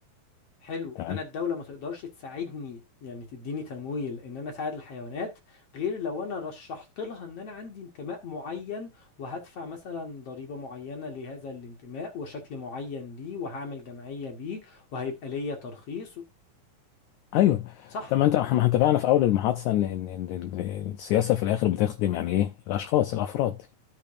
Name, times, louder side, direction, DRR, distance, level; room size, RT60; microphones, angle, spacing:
voice 1, 0.6-16.2 17.9-18.1, left 5 dB, 50° left, 2.4 m, -36 dB
voice 2, 17.3-23.7, left 13 dB, 75° left, 1.8 m, -25 dB
13.0 x 8.8 x 2.6 m
omnidirectional pair, 4.0 m